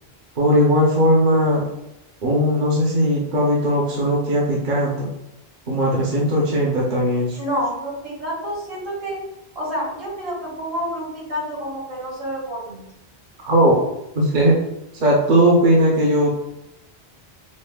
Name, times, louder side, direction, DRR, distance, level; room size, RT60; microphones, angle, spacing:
voice 1, 0.4-1.6 2.2-5.1 5.7-7.4 13.4-13.8 14.1-14.5 14.9-16.3, equal, 50° right, -4 dB, 0.8 m, -18 dB
voice 2, 7.4-9.2 9.5-12.8, equal, 65° right, -5 dB, 1.5 m, -28 dB
5.1 x 2.0 x 2.2 m, 0.88 s
omnidirectional pair, 1.1 m